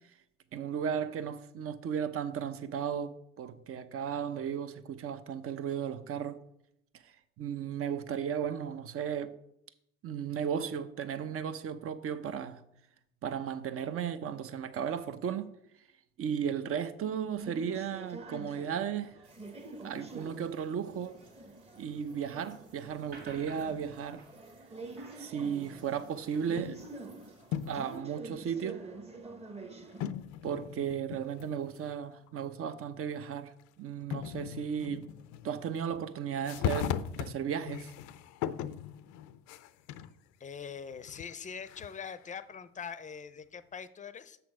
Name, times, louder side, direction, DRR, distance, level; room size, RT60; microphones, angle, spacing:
voice 1, 0.5-6.4 7.0-9.3 10.0-12.6 13.2-15.5 16.2-19.1 19.8-21.2 21.8-24.2 25.1-26.8 27.7-28.8 30.4-35.1 35.4-37.9, right 8 dB, 45° right, 0.8 m, -35 dB
sound 1, 17.4-30.1, right 3 dB, 20° right, 1.0 m, -47 dB
sound 2, 19.2-28.0, right 3 dB, 90° right, 2.2 m, -57 dB
sound 3, 26.1-26.9 27.4-28.0 28.7-28.8 30.0-32.0 32.3-32.4 33.6-33.7 34.1-36.0 36.4-40.2 40.7-42.2, left 9 dB, 65° left, 0.5 m, -38 dB
voice 2, 40.4-44.4, left 6 dB, 25° left, 0.6 m, -43 dB
6.8 x 6.2 x 4.8 m
supercardioid pair, 80°, 31 cm